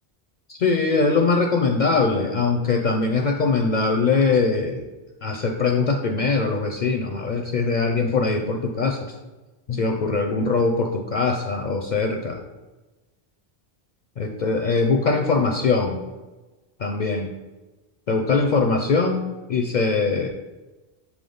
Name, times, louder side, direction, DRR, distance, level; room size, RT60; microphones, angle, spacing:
voice 1, 0.5-4.8 5.2-9.2 9.7-12.4 14.2-16.0 16.8-17.3 18.1-20.3, left 4 dB, 55° left, 2 dB, 0.5 m, -22 dB
7.1 x 3.6 x 3.8 m, 1.2 s
omnidirectional pair, 1.1 m